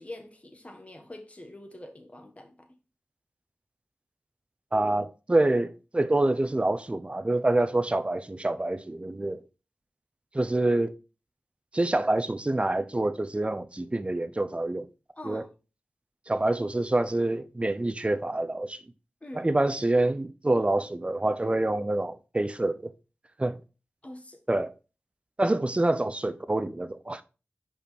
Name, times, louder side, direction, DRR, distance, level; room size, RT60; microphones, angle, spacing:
voice 1, 0.0-2.8 15.1-15.5 19.2-19.5 24.0-24.4, left 1 dB, 35° left, 1.6 m, -44 dB
voice 2, 4.7-9.4 10.3-10.9 11.7-14.9 15.2-15.4 16.3-18.8 19.3-22.8 23.4-23.6 24.5-24.7 25.4-27.2, right 2 dB, 30° right, 0.7 m, -26 dB
5.1 x 5.0 x 4.4 m
cardioid pair, 40°, 4 cm